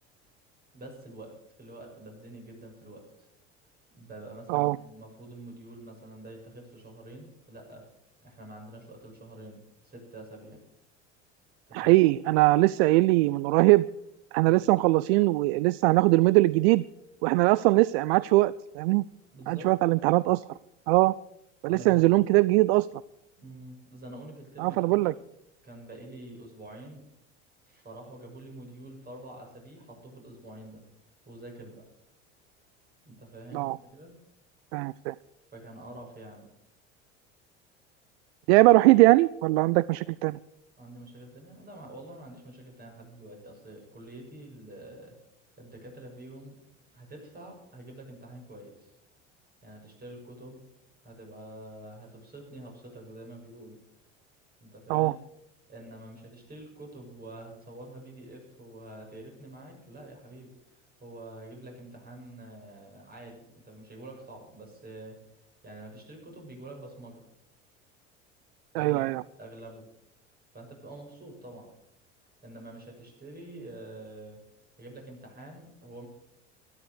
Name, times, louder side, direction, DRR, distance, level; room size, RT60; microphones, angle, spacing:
voice 1, 0.7-3.3 3.9-7.8 8.2-10.6 11.7-11.9 19.3-19.7 21.7-22.1 23.4-25.1 25.6-27.0 27.6-30.8 31.2-31.8 33.0-34.1 35.5-36.5 40.8-45.2 45.6-46.5 46.9-49.0 49.6-50.6 51.0-53.8 54.6-55.1 55.7-65.2 65.6-67.2 68.7-69.0 69.4-69.9 70.5-71.7 72.4-74.4 74.8-76.1, right 1 dB, 25° right, 1 dB, 6.8 m, -46 dB
voice 2, 11.7-13.9 14.3-16.8 17.2-19.0 19.5-20.4 20.9-21.1 21.6-22.9 24.6-25.1 33.5-33.8 34.7-35.1 38.5-40.4 54.9-55.1 68.7-69.2, right 20 dB, 60° right, 20 dB, 0.5 m, -21 dB
13.0 x 13.0 x 6.6 m, 0.79 s
hypercardioid pair, 70°, 35 cm